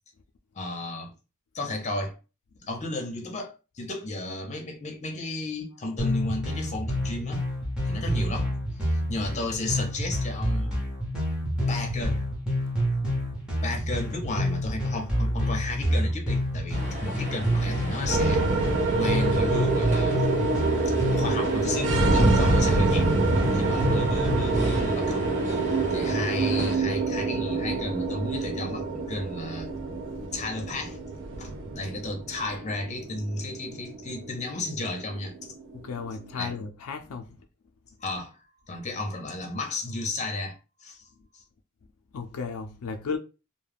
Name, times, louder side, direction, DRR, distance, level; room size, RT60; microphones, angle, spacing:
voice 1, 0.5-1.1 1.5-2.2 2.6-7.4 7.8-8.5 8.8-10.8 11.7-12.2 13.6-18.4 19.0-20.3 21.1-23.1 23.5-25.2 25.9-29.7 30.3-31.0 31.4-35.3 36.4-36.5 38.0-38.4 38.7-41.0 41.3-41.4, left 2 dB, 35° left, 0.7 m, -33 dB
sound 1, 6.0-24.8, equal, 5° right, 0.9 m, -28 dB
sound 2, 16.7-26.8, right 1 dB, 35° right, 0.9 m, -36 dB
sound 3, 18.1-36.5, right 3 dB, 60° right, 0.5 m, -26 dB
voice 2, 35.7-37.3 42.1-43.2, left 5 dB, 90° left, 0.4 m, -34 dB
2.3 x 2.1 x 3.3 m
head